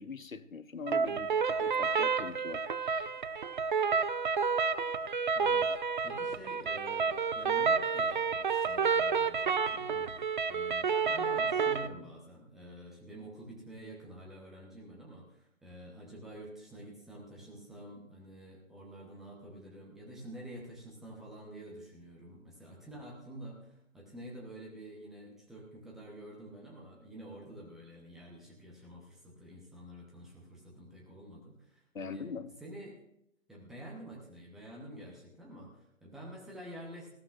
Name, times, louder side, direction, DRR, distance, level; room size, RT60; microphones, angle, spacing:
voice 1, 0.0-3.1 31.9-32.5, left 5 dB, 85° left, 0.9 m, -43 dB
sound 1, 0.9-11.9, right 5 dB, 40° right, 0.5 m, -30 dB
voice 2, 5.3-5.7 6.0-32.3 32.6-33.0 33.5-37.1, right 1 dB, ahead, 0.7 m, -49 dB
19.0 x 14.5 x 2.5 m
figure-of-eight pair, 140°, 39 cm